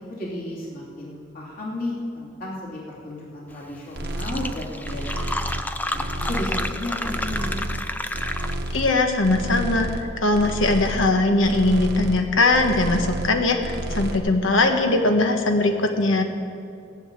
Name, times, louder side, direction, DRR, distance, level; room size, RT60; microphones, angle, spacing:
voice 1, 0.1-5.3 5.9-7.6, left 1 dB, 45° left, -6 dB, 2.8 m, -33 dB
Fill (with liquid), 3.7-3.8 4.0-8.8, left 1 dB, 10° left, 0.3 m, -30 dB
sound 1, 4.0-4.5 4.8-5.7 5.9-6.8 7.0-7.9 8.1-8.9 9.2-10.1 10.3-11.1 11.4-12.2 12.5-13.3 13.6-14.2, right 1 dB, 55° right, 1.1 m, -30 dB
voice 2, 8.7-16.2, left 2 dB, 75° left, 5 dB, 1.2 m, -20 dB
17.0 x 6.9 x 9.0 m, 2.5 s
head